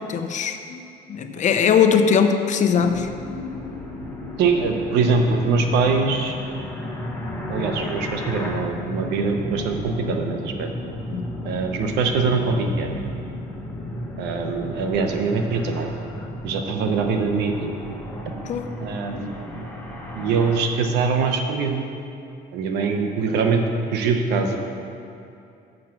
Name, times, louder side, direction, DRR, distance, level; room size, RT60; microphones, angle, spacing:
voice 1, 0.0-3.1 11.1-11.2 18.4-18.7, left 7 dB, 45° left, 7 dB, 0.6 m, -20 dB
sound 1, 2.7-20.6, left 1 dB, 10° left, 1.2 m, -33 dB
voice 2, 4.4-6.3 7.5-10.7 11.4-13.0 14.2-15.9 16.4-17.7 18.8-19.5 20.1-21.8 22.5-24.6, right 4 dB, 85° right, 5 dB, 0.9 m, -23 dB
7.5 x 6.3 x 5.9 m, 2.6 s
cardioid pair, 110°, 17 cm